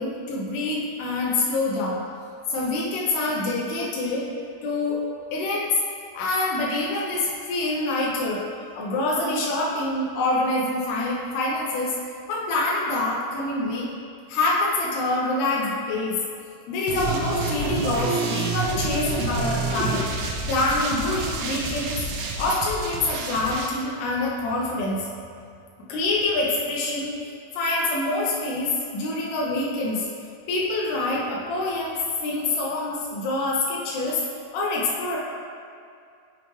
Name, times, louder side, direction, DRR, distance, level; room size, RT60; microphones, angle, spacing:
voice 1, 0.0-2.0 2.5-4.2 4.6-5.0 5.3-5.7 6.1-11.9 12.3-13.9 14.3-16.2 16.7-20.0 20.5-22.0 22.4-25.1 25.9-27.1 27.5-30.1 30.5-32.0 32.2-34.2 34.5-35.2, left 2 dB, 85° left, -4 dB, 2.3 m, -26 dB
sound 1, 16.9-23.7, right 3 dB, 85° right, 3.2 m, -28 dB
7.0 x 5.7 x 3.1 m, 2.4 s
omnidirectional pair, 5.6 m